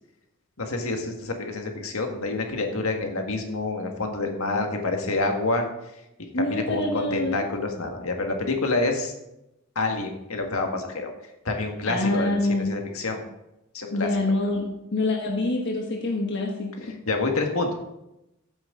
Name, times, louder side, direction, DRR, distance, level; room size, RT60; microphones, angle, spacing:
voice 1, 0.6-5.7 6.2-9.1 9.8-11.1 11.5-13.2 13.7-14.1 17.1-17.7, left 2 dB, 80° left, 3 dB, 1.7 m, -27 dB
voice 2, 6.3-7.5 11.9-12.7 13.9-16.9, left 2 dB, 55° left, 1 dB, 1.2 m, -26 dB
14.0 x 7.5 x 3.8 m, 0.89 s
head